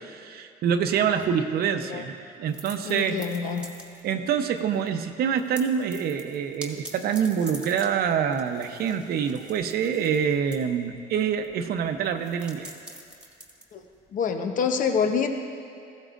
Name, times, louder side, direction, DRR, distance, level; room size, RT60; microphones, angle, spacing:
voice 1, 0.0-3.2 4.0-12.7, right 7 dB, 65° right, 6 dB, 0.8 m, -26 dB
voice 2, 1.7-2.0 2.8-3.7 13.7-13.8 14.1-15.3, left 6 dB, 50° left, 6 dB, 0.9 m, -26 dB
sound 1, 2.5-4.3 4.6-4.9 5.2-14.3, right 1 dB, 5° right, 1.7 m, -45 dB
17.5 x 15.5 x 2.5 m, 2.5 s
cardioid pair, 110°, 17 cm